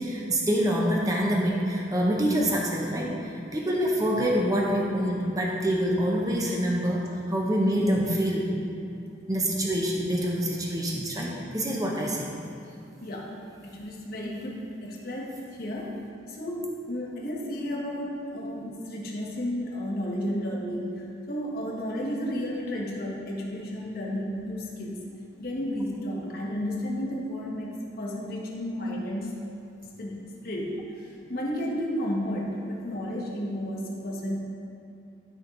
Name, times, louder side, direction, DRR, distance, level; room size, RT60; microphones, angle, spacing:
voice 1, 0.0-8.5 9.3-12.3, equal, 20° right, -2 dB, 0.8 m, -26 dB
voice 2, 13.0-13.3 13.6-15.9 16.3-25.0 25.4-29.3 30.0-34.4, equal, 55° left, -3 dB, 1.4 m, -32 dB
12.5 x 4.5 x 3.9 m, 2.6 s
head